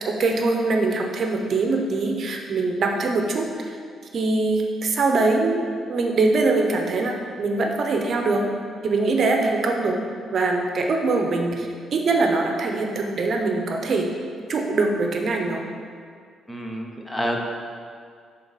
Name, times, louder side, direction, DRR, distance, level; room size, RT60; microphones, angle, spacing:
voice 1, 0.0-3.8 4.1-5.6 5.9-8.5 8.8-10.0 10.3-14.1 14.5-15.6, right 3 dB, 55° right, 2 dB, 0.7 m, -23 dB
voice 2, 16.5-17.4, equal, 10° left, 1 dB, 0.7 m, -28 dB
6.8 x 4.0 x 4.0 m, 2.1 s
cardioid pair, 90°, 0 cm